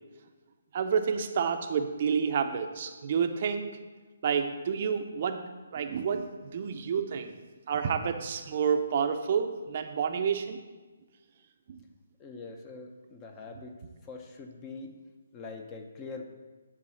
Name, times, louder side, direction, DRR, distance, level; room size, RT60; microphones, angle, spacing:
voice 1, 0.7-3.8 4.2-5.4 5.7-6.3 6.5-7.4 7.7-10.6 11.7-11.8, right 6 dB, 40° right, 7 dB, 0.6 m, -29 dB
voice 2, 12.2-15.0 15.3-16.2, left 4 dB, 20° left, 4 dB, 0.7 m, -43 dB
10.0 x 3.8 x 6.3 m, 1.3 s
hypercardioid pair, 160°, 0 cm